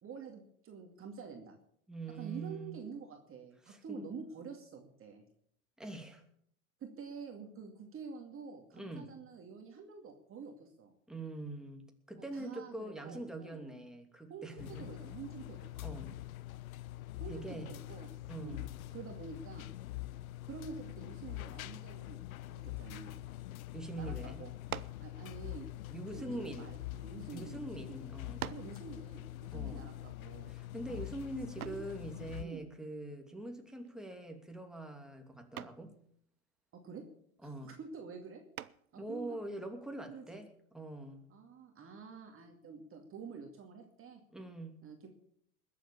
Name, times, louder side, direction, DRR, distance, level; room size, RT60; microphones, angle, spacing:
voice 1, 0.0-1.6 2.2-5.3 6.8-10.9 12.2-13.6 14.3-15.7 17.2-18.1 18.4-19.7 20.5-22.2 22.5-23.2 23.9-24.5 25.0-25.7 26.1-30.5 31.6-31.8 32.4-32.6 36.7-37.0 37.4-38.4 38.9-39.4 40.0-40.4 41.3-44.2 44.8-45.1, right 5 dB, 30° right, 3 dB, 2.4 m, -48 dB
voice 2, 1.9-2.8 3.6-4.1 5.8-6.2 8.7-9.1 11.1-14.8 15.8-16.1 17.3-17.7 18.3-18.7 23.7-24.4 25.9-26.7 27.3-28.4 29.5-29.8 30.5-35.9 37.4-37.7 38.9-41.2 44.3-44.8, right 2 dB, ahead, 3 dB, 2.7 m, -44 dB
sound 1, 14.6-32.4, left 16 dB, 80° left, 0.7 m, -44 dB
sound 2, 24.7-25.1 26.0-27.2 27.9-28.0 28.4-28.8 31.6-31.9 33.8-34.2 34.6-34.9 35.6-35.9 38.5-39.0, right 11 dB, 90° right, 0.7 m, -44 dB
20.5 x 7.7 x 7.1 m, 0.67 s
hypercardioid pair, 100°, 42 cm